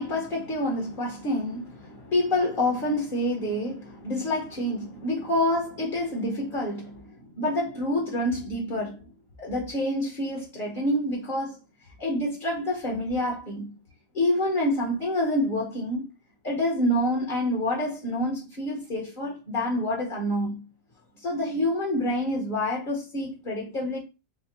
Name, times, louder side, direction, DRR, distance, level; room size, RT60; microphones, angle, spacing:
voice 1, 0.0-7.0 7.3-9.0 9.4-11.6 12.0-13.7 14.1-16.0 16.4-20.6 21.2-24.0, left 1 dB, 35° left, 1.2 m, -27 dB
4.1 x 2.3 x 4.3 m
omnidirectional pair, 1.6 m